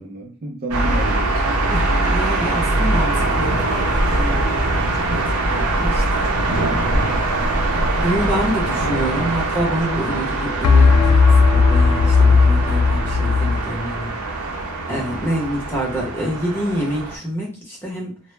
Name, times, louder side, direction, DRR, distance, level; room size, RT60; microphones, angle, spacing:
voice 1, 0.0-1.8 14.9-15.3, right 1 dB, 45° right, 1 dB, 0.4 m, -31 dB
sound 1, 0.7-17.2, right 2 dB, 90° right, 0.6 m, -22 dB
voice 2, 1.7-3.6 4.1-6.3 8.0-14.2 14.9-18.2, equal, 10° left, -3 dB, 0.7 m, -27 dB
sound 2, 3.3-4.2 10.6-13.7, left 4 dB, 85° left, 0.3 m, -15 dB
2.0 x 2.0 x 3.2 m, 0.37 s
head